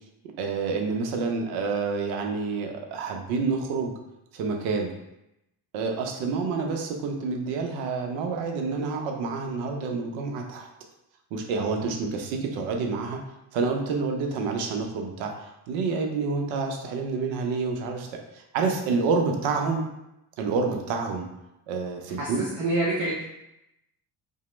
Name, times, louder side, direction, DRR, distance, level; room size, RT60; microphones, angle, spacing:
voice 1, 0.4-3.9 4.3-4.9 5.7-10.7 11.3-13.2 13.5-19.8 20.4-21.2 21.7-22.4, right 4 dB, 75° right, 3 dB, 0.7 m, -28 dB
voice 2, 22.2-23.2, right 2 dB, 40° right, -5 dB, 0.7 m, -27 dB
2.9 x 2.1 x 3.0 m, 0.87 s
hypercardioid pair, 60°, 48 cm